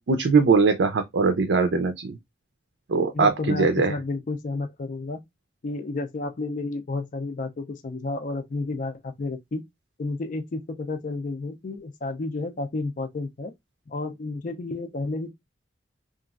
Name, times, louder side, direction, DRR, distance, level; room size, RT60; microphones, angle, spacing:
voice 1, 0.0-2.2 2.9-3.9, right 4 dB, 75° right, 0.5 m, -21 dB
voice 2, 3.1-5.2 5.6-9.6 10.0-13.5 13.9-15.3, left 3 dB, 45° left, 0.4 m, -31 dB
2.9 x 2.4 x 2.4 m
head